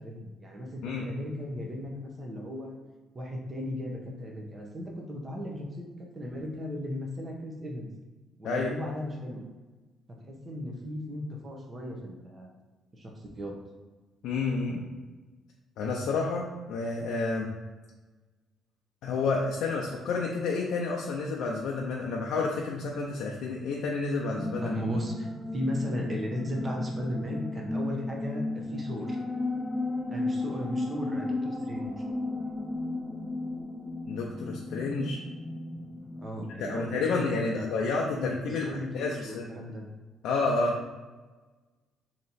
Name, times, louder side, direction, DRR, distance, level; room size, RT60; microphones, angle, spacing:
voice 1, 0.0-2.8 3.1-7.9 8.4-9.4 10.3-12.5 12.9-13.5 24.6-29.2 30.1-32.0 36.2-39.9, left 1 dB, 30° right, 0 dB, 0.9 m, -36 dB
voice 2, 14.2-14.8 15.8-17.5 19.0-24.8 34.1-35.2 36.6-39.4 40.2-40.8, left 3 dB, 80° left, -2 dB, 0.5 m, -30 dB
sound 1, 24.3-36.9, left 2 dB, 5° left, 0.5 m, -34 dB
3.1 x 2.9 x 4.1 m, 1.3 s
cardioid pair, 100°, 0 cm